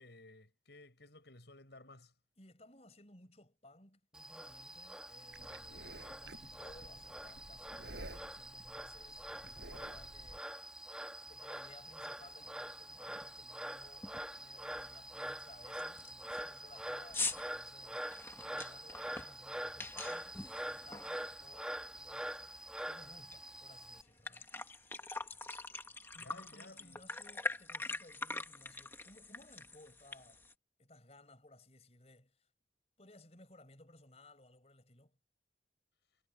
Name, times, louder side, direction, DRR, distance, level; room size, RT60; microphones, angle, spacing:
voice 1, 0.0-2.1 26.2-27.0, left 2 dB, 70° left, 5.8 m, -56 dB
voice 2, 2.4-10.9 11.2-24.7 26.1-30.5 30.8-32.5 33.0-35.2, left 1 dB, 35° left, 5.4 m, -61 dB
Frog, 4.1-24.0, right 1 dB, 5° right, 1.4 m, -45 dB
Livestock farm animals working animals, 5.3-10.4, right 1 dB, 75° right, 7.7 m, -52 dB
sound 1, 12.4-12.5 12.9-13.2 13.5-13.6 14.0-14.4 14.8-14.9 15.4-15.5 15.8-21.7 22.1-23.4 23.7-23.8 24.1-30.5, left 3 dB, 15° left, 1.8 m, -44 dB
head